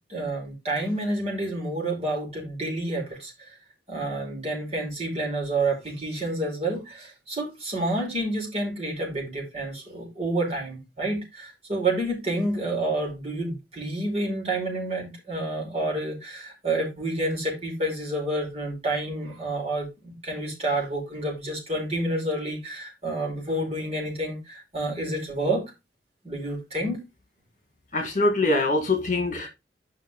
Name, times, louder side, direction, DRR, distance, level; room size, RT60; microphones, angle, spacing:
voice 1, 0.1-3.5 3.9-25.7 26.2-27.0, right 2 dB, 35° right, 4.9 m, -29 dB
voice 2, 27.9-29.5, left 2 dB, 45° left, 1.9 m, -23 dB
9.9 x 5.9 x 3.6 m
head